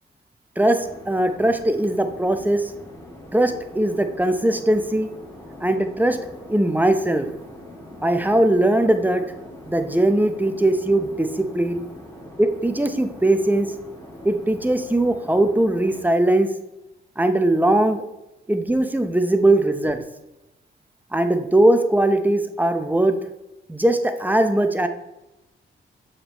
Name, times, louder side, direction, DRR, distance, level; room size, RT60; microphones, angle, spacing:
voice 1, 0.6-2.7 3.3-5.1 5.6-6.2 6.5-7.3 8.0-9.2 9.7-11.8 12.4-13.7 14.2-16.5 17.2-18.0 18.5-20.0 21.1-23.2 23.7-24.9, right 1 dB, 10° right, 7 dB, 0.7 m, -20 dB
sound 1, 0.8-16.0, left 1 dB, 15° left, 2.4 m, -42 dB
7.4 x 4.9 x 3.0 m, 0.92 s
cardioid pair, 65°, 20 cm